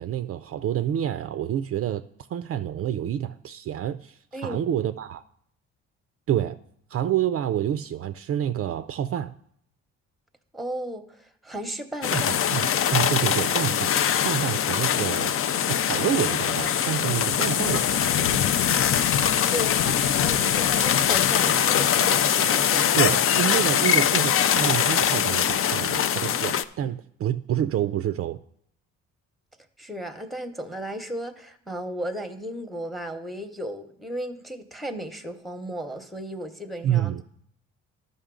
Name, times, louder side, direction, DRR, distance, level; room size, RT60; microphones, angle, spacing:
voice 1, 0.0-2.0 2.3-5.2 6.3-6.6 6.9-9.3 12.1-14.0 14.2-15.3 15.7-18.5 22.9-28.4 36.8-37.2, right 10 dB, 50° right, 11 dB, 0.4 m, -28 dB
voice 2, 4.3-4.8 10.5-12.5 14.1-14.3 19.2-23.1 26.8-26.9 29.8-37.1, right 1 dB, ahead, 9 dB, 0.8 m, -35 dB
sound 1, 12.0-26.6, left 9 dB, 45° left, 0.4 m, -22 dB
12.5 x 5.4 x 3.7 m, 0.69 s
cardioid pair, 90°, 30 cm